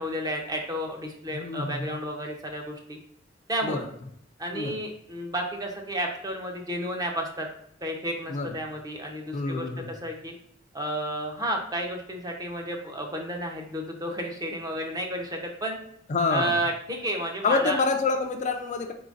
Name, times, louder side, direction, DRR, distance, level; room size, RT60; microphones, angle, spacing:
voice 1, 0.0-3.0 3.5-3.8 4.4-7.5 7.8-10.3 10.7-15.8 16.3-17.8, right 1 dB, 20° right, 2 dB, 0.6 m, -32 dB
voice 2, 1.3-2.0 3.6-3.8 4.5-4.7 8.3-8.5 9.3-9.9 16.1-16.6 17.4-18.9, left 4 dB, 40° left, 4 dB, 0.4 m, -27 dB
3.8 x 3.8 x 2.5 m, 0.70 s
head